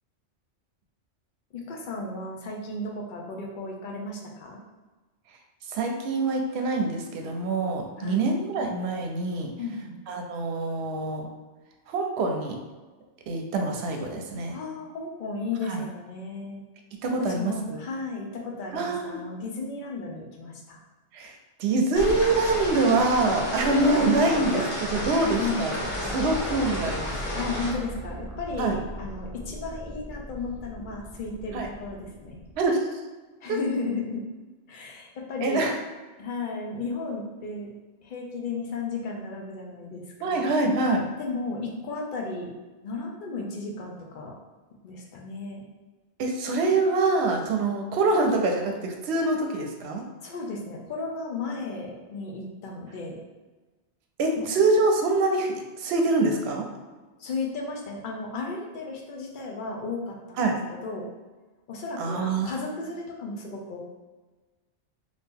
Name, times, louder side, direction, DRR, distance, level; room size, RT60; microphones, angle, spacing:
voice 1, 1.5-4.6 8.0-8.2 9.6-9.9 14.5-16.6 17.3-20.8 25.4-25.7 27.3-32.4 33.4-34.2 34.7-35.7 36.2-37.7 38.0-40.5 41.2-42.5 42.8-44.3 44.8-45.7 50.2-53.2 54.4-54.5 57.2-61.1 61.7-63.8, left 3 dB, 55° left, 0 dB, 0.7 m, -34 dB
voice 2, 5.7-9.5 10.1-11.3 11.9-12.6 13.3-14.6 15.7-15.8 17.0-17.8 18.7-19.2 21.1-25.7 26.1-27.2 28.6-28.8 31.5-31.7 32.6-33.0 33.5-33.6 35.4-35.7 40.2-41.1 46.2-50.0 54.2-56.7 60.4-60.5 62.0-62.5, right 3 dB, 70° right, 2 dB, 0.8 m, -25 dB
sound 1, 21.9-27.7, left 1 dB, 80° left, 1.2 m, -31 dB
sound 2, 25.8-32.6, equal, 25° right, 0.4 m, -39 dB
2.8 x 2.5 x 3.5 m, 1.2 s
omnidirectional pair, 1.2 m